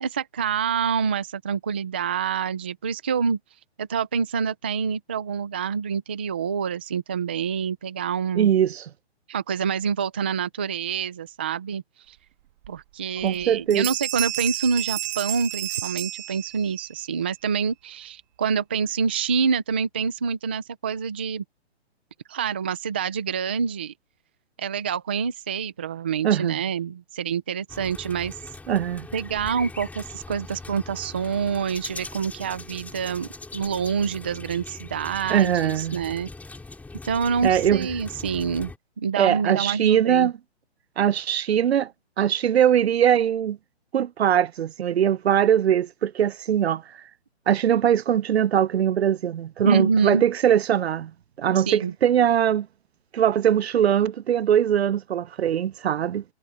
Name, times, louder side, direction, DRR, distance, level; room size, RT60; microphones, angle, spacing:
voice 1, 0.0-3.4 3.8-8.5 9.3-12.2 12.7-21.4 22.3-23.9 24.6-28.4 29.1-36.3 37.0-38.7 39.0-40.3 49.6-50.2 51.6-51.9, right 6 dB, 10° right, 0.3 m, -27 dB
voice 2, 8.4-8.9 13.2-13.9 26.2-26.6 28.7-29.1 35.3-36.0 37.4-37.9 39.2-40.3 41.0-41.9 42.2-43.6 43.9-46.8 47.5-51.1 51.4-52.7 53.1-56.2, right 9 dB, 70° right, 0.7 m, -21 dB
Bell, 12.6-12.7 13.2-13.5 13.7-16.9, right 13 dB, 40° right, 2.5 m, -31 dB
sound 1, 27.7-38.8, left 3 dB, 5° left, 4.1 m, -41 dB
hypercardioid pair, 145°, 33 cm